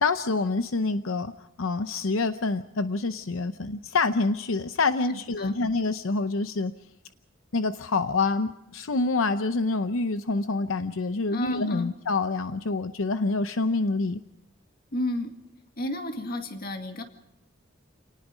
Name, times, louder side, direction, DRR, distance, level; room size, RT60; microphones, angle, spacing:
voice 1, 0.0-1.3 1.6-6.7 7.5-14.2, left 3 dB, 85° left, 10 dB, 0.7 m, -27 dB
voice 2, 5.1-5.6 11.3-11.9 14.9-15.3 15.8-17.0, left 1 dB, 50° left, 5 dB, 2.1 m, -32 dB
28.0 x 19.0 x 5.1 m, 0.87 s
head